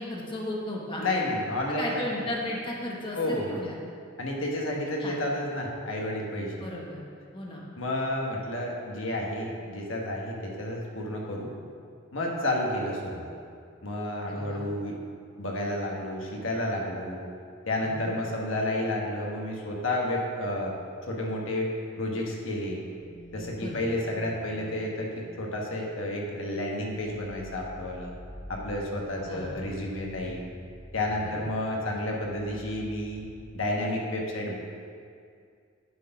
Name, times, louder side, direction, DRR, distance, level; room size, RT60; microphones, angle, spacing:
voice 1, 0.0-1.0 1.8-3.7 5.0-5.2 6.6-7.1 7.3-7.6 14.3-14.7 17.8-18.1 23.6-23.8 29.2-29.6 31.2-31.4, left 1 dB, 25° left, -3 dB, 1.0 m, -35 dB
voice 2, 1.0-2.0 3.1-3.5 4.2-6.5 7.8-11.5 12.1-13.3 13.8-15.0 15.4-17.2 17.7-20.7 21.1-22.8 23.3-28.1 28.5-30.4 30.9-33.2 33.5-34.5, left 1 dB, 75° left, -1 dB, 1.3 m, -31 dB
sound 1, 23.0-25.7 26.1-26.4 26.8-33.3, equal, 45° left, 1.5 m, -47 dB
9.2 x 4.4 x 5.8 m, 2.3 s
head